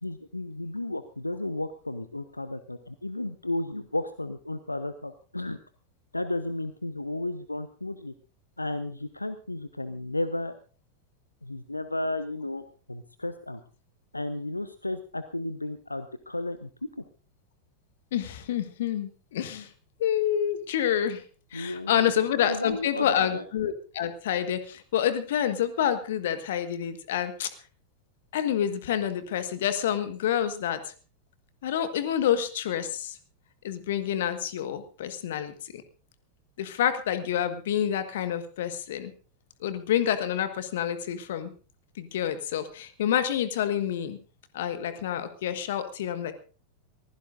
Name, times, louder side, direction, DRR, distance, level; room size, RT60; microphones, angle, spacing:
voice 1, 0.0-5.6 6.1-8.1 8.6-10.5 11.4-13.6 14.1-16.7 21.5-22.0 22.5-23.4, left 2 dB, 85° left, 12 dB, 0.8 m, -33 dB
voice 2, 18.1-19.7 20.0-21.2 21.5-27.5 28.3-30.9 31.6-33.2 33.6-35.8 36.6-39.1 39.6-41.5 42.0-44.2 44.5-46.3, left 10 dB, 55° left, 11 dB, 1.6 m, -28 dB
23.5 x 15.5 x 2.6 m, 0.37 s
figure-of-eight pair, 90°, 0 cm